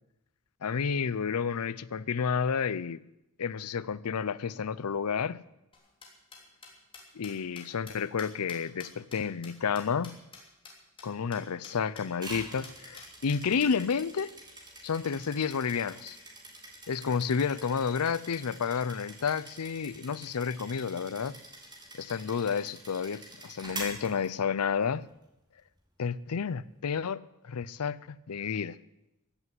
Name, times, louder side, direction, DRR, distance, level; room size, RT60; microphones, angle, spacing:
voice 1, 0.6-3.0 3.4-5.4 7.1-10.2 11.0-14.3 14.8-16.2 16.9-21.4 22.0-25.1 26.0-27.2 27.5-28.8, left 6 dB, 85° left, 0.5 m, -31 dB
sound 1, 5.7-10.4 10.6-10.7 11.0-11.1 11.3-11.4 11.6-12.0 12.3-12.4 12.6-13.7, left 4 dB, 25° left, 3.3 m, -48 dB
sound 2, 12.2-24.8, right 2 dB, 20° right, 3.6 m, -46 dB
15.0 x 8.3 x 9.6 m
head